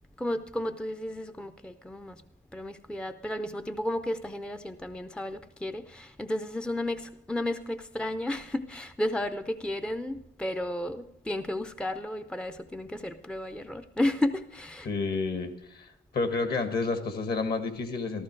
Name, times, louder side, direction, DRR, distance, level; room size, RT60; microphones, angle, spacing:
voice 1, 0.2-2.2 2.5-14.9, left 1 dB, 5° left, 8 dB, 0.6 m, -33 dB
voice 2, 14.8-15.9 16.1-18.2, left 3 dB, 55° left, 8 dB, 1.9 m, -30 dB
14.5 x 14.0 x 4.7 m, 0.82 s
cardioid pair, 90°, 20 cm